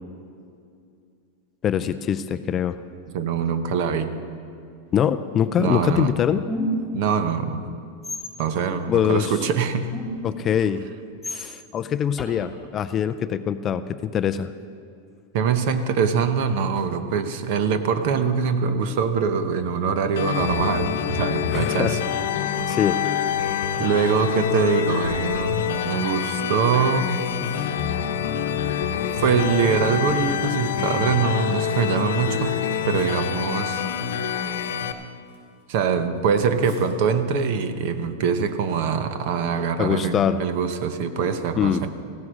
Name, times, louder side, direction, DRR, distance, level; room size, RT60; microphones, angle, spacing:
voice 1, 1.6-2.8 4.9-6.4 8.9-9.4 10.2-10.8 11.3-14.5 21.5-22.0 22.7-23.0 39.8-40.4 41.6-41.8, left 9 dB, 20° left, 10 dB, 0.3 m, -23 dB
voice 2, 3.1-4.1 5.6-6.1 6.9-7.6 8.4-9.9 15.3-22.0 23.8-27.2 29.2-32.6 32.9-33.9 35.7-41.9, right 6 dB, 50° right, 10 dB, 0.9 m, -23 dB
sound 1, 6.5-6.9 8.0-8.3 9.9-10.3 11.2-11.4 12.2-12.3, equal, ahead, 1.9 m, -28 dB
sound 2, 20.2-34.9, left 8 dB, 85° left, 0.8 m, -26 dB
Tearing, 23.8-24.0 25.0-25.7 26.5-31.0 31.3-35.6 35.9-36.8 38.6-38.9 39.2-39.3, right 1 dB, 70° right, 4.4 m, -47 dB
15.0 x 9.7 x 6.3 m, 2.4 s
supercardioid pair, 165°, 0 cm